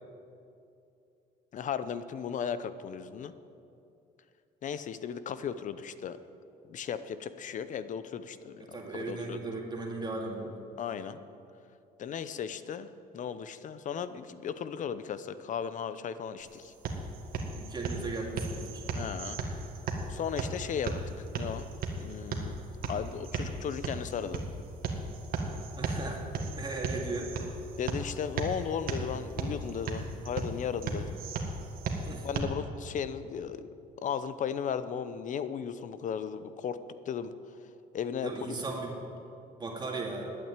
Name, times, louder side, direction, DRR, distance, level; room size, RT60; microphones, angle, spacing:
voice 1, 1.5-3.3 4.6-6.2 6.7-9.4 10.8-11.2 12.0-12.9 13.1-16.7 18.9-19.4 20.1-21.7 22.0-22.5 22.9-24.4 27.8-31.2 32.2-33.7 34.0-36.8 37.1-37.3 37.9-38.6, left 7 dB, 50° left, 13 dB, 0.7 m, -36 dB
voice 2, 8.7-10.5 17.5-18.8 25.8-26.2 26.6-27.3 32.0-32.3 38.2-39.0 39.6-40.3, right 3 dB, 25° right, 0 dB, 2.3 m, -37 dB
sound 1, 16.4-32.4, right 3 dB, 60° right, 1.8 m, -36 dB
12.0 x 8.8 x 9.0 m, 2.6 s
cardioid pair, 110°, 17 cm